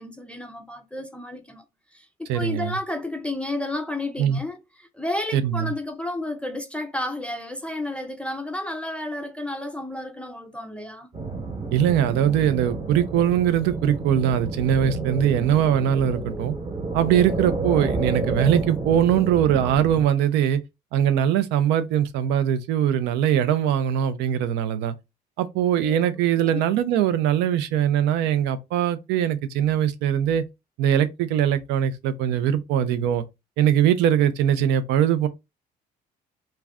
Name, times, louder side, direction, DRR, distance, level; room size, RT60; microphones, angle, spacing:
voice 1, 0.0-1.6 1.9-11.1 25.8-26.1 26.4-26.6, left 1 dB, 5° left, 0.4 m, -32 dB
voice 2, 2.3-2.8 4.2-4.4 5.3-5.7 11.7-16.5 16.9-20.6 20.9-24.9 25.4-30.4 30.8-33.2 33.6-35.3, right 10 dB, 90° right, 0.4 m, -21 dB
sound 1, 11.1-20.0, right 3 dB, 35° right, 0.9 m, -30 dB
2.4 x 2.2 x 3.4 m
cardioid pair, 110°, 17 cm